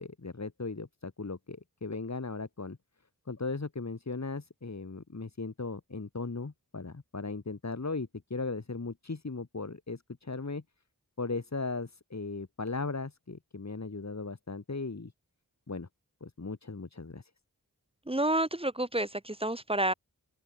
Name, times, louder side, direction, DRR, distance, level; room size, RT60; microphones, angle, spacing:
voice 1, 0.0-2.8 3.3-10.6 11.2-15.1 15.7-15.9 16.2-17.3, left 3 dB, 50° left, 5.4 m, -37 dB
voice 2, 18.1-19.9, right 1 dB, 15° right, 3.3 m, -29 dB
open air
wide cardioid pair, 70°, 35 cm